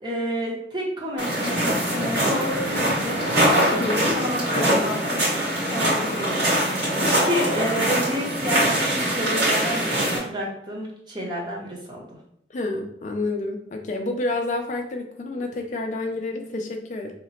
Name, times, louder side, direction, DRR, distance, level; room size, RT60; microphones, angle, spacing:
voice 1, 0.0-3.8 4.1-12.0, equal, 25° right, -3 dB, 0.7 m, -30 dB
sound 1, 1.2-10.2, right 1 dB, 75° right, 1.4 m, -23 dB
voice 2, 3.7-4.0 4.5-4.9 12.5-17.1, left 2 dB, 45° left, 3 dB, 0.3 m, -29 dB
2.8 x 2.0 x 4.0 m, 0.72 s
head